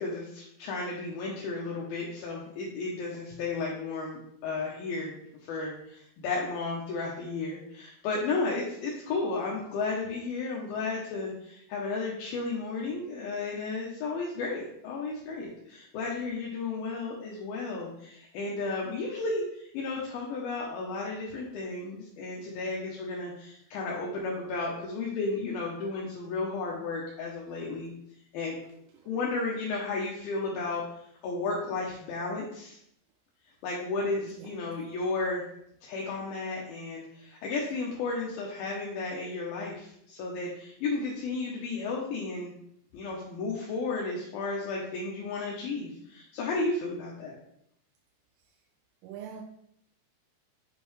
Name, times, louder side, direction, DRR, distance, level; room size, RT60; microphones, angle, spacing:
voice 1, 0.0-5.1 5.4-27.9 28.3-28.6 29.1-30.8 31.2-32.8 33.6-35.5 35.8-42.5 42.9-47.4, left 3 dB, 75° left, -3 dB, 2.4 m, -33 dB
voice 2, 34.2-34.5 49.0-49.4, right 8 dB, 90° right, 1 dB, 2.9 m, -44 dB
7.3 x 5.1 x 3.2 m, 0.72 s
omnidirectional pair, 5.1 m